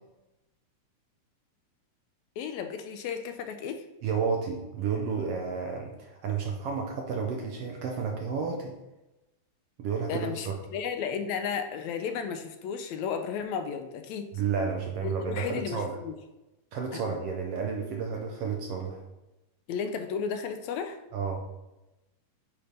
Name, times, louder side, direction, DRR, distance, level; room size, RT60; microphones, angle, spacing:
voice 1, 2.4-3.8 10.1-14.3 15.0-15.8 16.0-16.1 16.9-17.2 19.7-21.0, left 6 dB, 80° left, 7 dB, 1.8 m, -33 dB
voice 2, 4.0-8.8 9.8-10.5 14.3-16.0 16.7-19.0 21.1-21.4, right 5 dB, 70° right, 2 dB, 1.5 m, -31 dB
8.6 x 3.3 x 5.2 m, 0.99 s
omnidirectional pair, 3.4 m